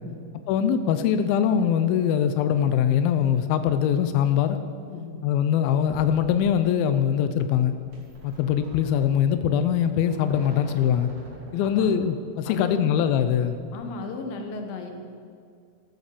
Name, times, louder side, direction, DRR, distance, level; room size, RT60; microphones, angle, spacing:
voice 1, 0.5-4.6 5.2-7.7 8.2-11.1 11.5-13.6, left 9 dB, 85° left, 9 dB, 2.1 m, -22 dB
sound 1, 5.8-13.4, right 2 dB, 55° right, 4.9 m, -46 dB
voice 2, 11.6-11.9 12.4-12.9 13.7-14.9, left 4 dB, 60° left, 4 dB, 2.9 m, -35 dB
14.0 x 13.0 x 6.9 m, 2.3 s
omnidirectional pair, 5.1 m